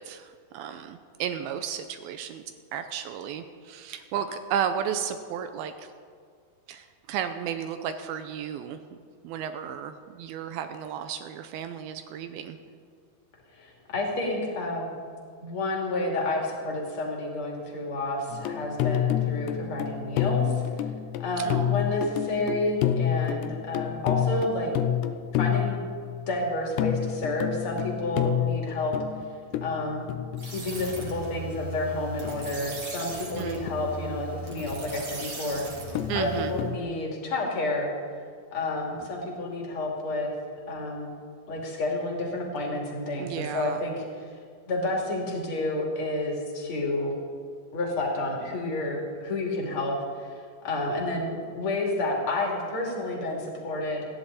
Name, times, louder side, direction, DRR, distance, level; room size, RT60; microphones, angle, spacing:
voice 1, 0.0-2.4 2.7-5.9 6.7-8.8 9.2-12.6 21.4-21.9 33.4-33.6 36.1-36.5 43.2-43.8, right 8 dB, 85° right, 8 dB, 2.2 m, -33 dB
voice 2, 13.5-15.0 15.4-20.6 21.2-24.7 25.4-25.8 26.3-28.9 29.6-30.1 30.4-35.6 36.1-37.9 38.5-40.3 40.7-41.1 41.5-43.9 44.7-47.1 47.7-54.1, left 2 dB, 35° left, -2 dB, 3.1 m, -30 dB
sound 1, 18.3-31.6 32.3-32.9 33.7-33.8 36.0-36.8, left 10 dB, 80° left, 2.7 m, -29 dB
sound 2, 30.4-36.7, right 1 dB, 40° right, 2.4 m, -38 dB
28.0 x 10.5 x 4.2 m, 2.1 s
omnidirectional pair, 5.0 m